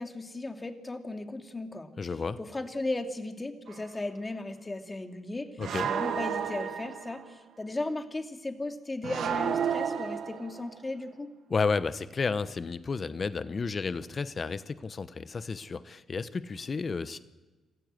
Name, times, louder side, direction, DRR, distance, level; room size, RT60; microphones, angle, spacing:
voice 1, 0.0-1.9 2.4-5.5 5.8-11.3, left 2 dB, 25° left, 5 dB, 2.8 m, -36 dB
voice 2, 2.0-2.4 5.6-5.9 11.5-17.2, left 4 dB, 45° left, 14 dB, 1.1 m, -32 dB
sound 1, 3.7-3.8 5.6-7.3 9.0-10.8, right 8 dB, 65° right, 1.5 m, -32 dB
27.0 x 15.0 x 7.8 m, 1.2 s
hypercardioid pair, 45°, 0 cm